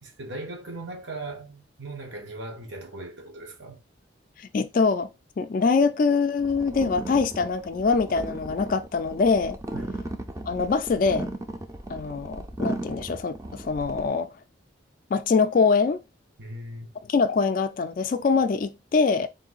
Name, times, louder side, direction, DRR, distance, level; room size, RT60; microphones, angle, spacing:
voice 1, 0.0-3.8 9.7-9.9 16.4-16.9, right 2 dB, 75° right, 1.1 m, -38 dB
voice 2, 4.4-5.1 5.4-9.6 10.5-11.3 11.9-14.3 15.1-16.0 17.1-19.3, left 4 dB, 45° left, 0.3 m, -24 dB
sound 1, 6.4-14.1, right 1 dB, 15° right, 0.4 m, -36 dB
3.7 x 2.7 x 3.9 m
head